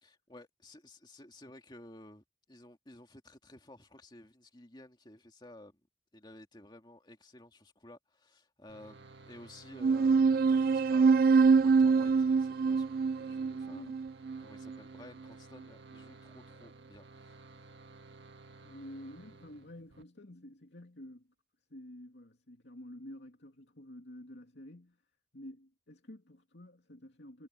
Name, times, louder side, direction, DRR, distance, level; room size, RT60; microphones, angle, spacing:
voice 1, 0.0-5.8 6.1-13.9 14.4-17.4, left 1 dB, 25° left, 2.4 m, -54 dB
sound 1, 8.7-20.0, right 3 dB, 80° right, 1.7 m, -55 dB
sound 2, 9.8-14.8, right 5 dB, 50° right, 0.3 m, -25 dB
voice 2, 13.7-14.0 18.6-21.3 21.7-25.0 25.3-27.5, left 1 dB, 75° left, 2.5 m, -49 dB
head